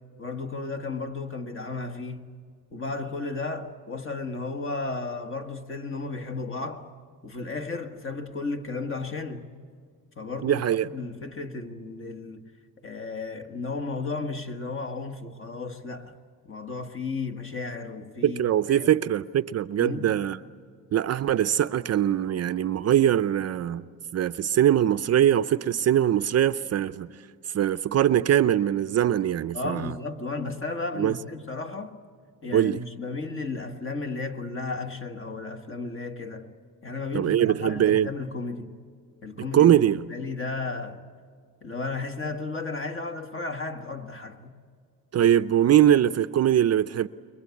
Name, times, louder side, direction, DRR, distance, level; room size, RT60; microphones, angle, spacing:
voice 1, 0.2-2.3 2.7-6.9 7.2-9.5 10.2-10.6 10.9-12.4 12.8-16.2 16.5-18.4 18.7-18.9 19.8-20.2 29.5-32.0 32.4-36.5 36.8-38.8 39.2-39.7 40.0-41.1 41.6-44.5, left 3 dB, 35° left, 1.7 m, -34 dB
voice 2, 10.4-10.9 18.2-20.4 20.9-23.8 24.1-27.1 27.5-29.9 31.0-31.1 32.5-32.8 37.1-38.1 39.5-40.0 45.1-47.1, right 11 dB, 45° right, 0.6 m, -22 dB
29.0 x 22.5 x 8.4 m
cardioid pair, 135°, 37 cm